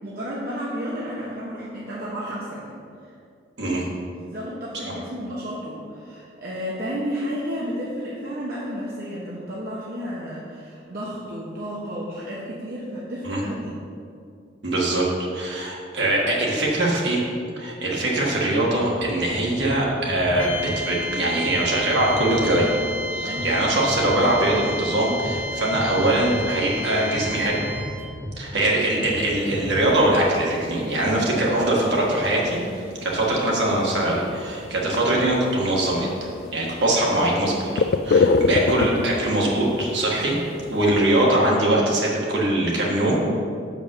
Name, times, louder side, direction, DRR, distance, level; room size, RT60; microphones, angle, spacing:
voice 1, 0.0-2.8 3.6-3.7 4.2-13.8 23.2-23.5 28.5-28.7, equal, 50° right, -6 dB, 1.1 m, -32 dB
voice 2, 14.6-15.1 15.3-17.2 17.6-22.8 23.1-27.6 28.4-32.6 33.0-40.4 40.7-43.4, right 1 dB, 65° right, -3 dB, 1.6 m, -22 dB
sound 1, 18.8-25.5 25.7-26.8 27.1-27.4 27.6-28.7 29.0-29.3 29.5-30.0, left 1 dB, 5° left, 0.8 m, -35 dB
sound 2, 20.4-28.1, equal, 85° left, 1.2 m, -31 dB
sound 3, 29.0-41.0, left 4 dB, 50° left, 0.3 m, -29 dB
6.3 x 5.2 x 6.4 m, 2.4 s
head